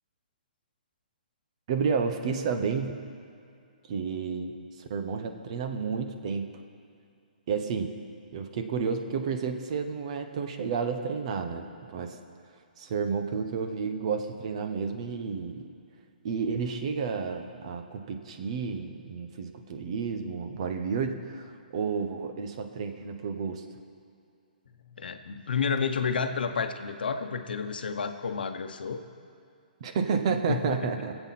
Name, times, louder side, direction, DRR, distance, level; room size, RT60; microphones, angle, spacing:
voice 1, 1.7-3.0 3.9-6.6 7.5-7.9 8.3-12.2 12.8-15.7 16.2-23.6 29.8-31.1, right 5 dB, 40° right, 6 dB, 1.0 m, -31 dB
voice 2, 25.0-29.0 30.5-30.9, left 6 dB, 80° left, 7 dB, 0.9 m, -30 dB
23.5 x 8.1 x 4.2 m, 2.4 s
hypercardioid pair, 165°, 5 cm